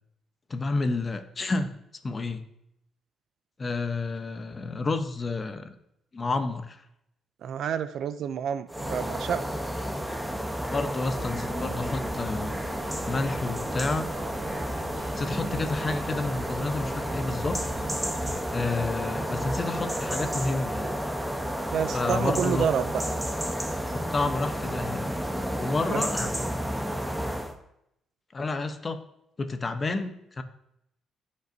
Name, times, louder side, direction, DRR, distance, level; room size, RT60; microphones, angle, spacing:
voice 1, 0.5-1.7 2.0-2.5 3.6-5.8 6.1-6.8 10.6-12.5 13.1-14.1 15.2-17.6 18.5-21.0 21.9-22.7 23.9-25.1 25.6-26.3 28.3-29.0 29.4-30.4, left 3 dB, 30° left, 9 dB, 0.8 m, -30 dB
voice 2, 7.4-9.5 21.7-23.0 25.9-26.1, right 8 dB, 70° right, 13 dB, 0.4 m, -29 dB
sound 1, 8.7-27.5, equal, 5° right, 0.9 m, -31 dB
sound 2, 11.1-18.3, right 2 dB, 45° right, 2.1 m, -41 dB
14.5 x 5.4 x 2.7 m, 0.79 s
cardioid pair, 90°, 0 cm